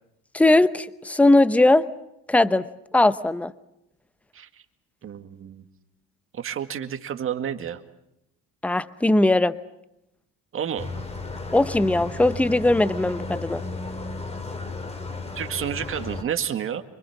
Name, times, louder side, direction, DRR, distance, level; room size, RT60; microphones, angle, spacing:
voice 1, 0.3-1.8 2.3-2.7 2.9-3.5 8.6-9.5 11.5-13.6, left 2 dB, 5° left, 14 dB, 0.9 m, -19 dB
voice 2, 5.0-5.6 6.3-7.8 10.5-10.9 15.4-16.8, right 9 dB, 40° right, 8 dB, 2.0 m, -30 dB
sound 1, 10.8-16.2, left 3 dB, 20° left, 2.9 m, -34 dB
25.0 x 24.0 x 7.3 m, 0.83 s
cardioid pair, 105°, 31 cm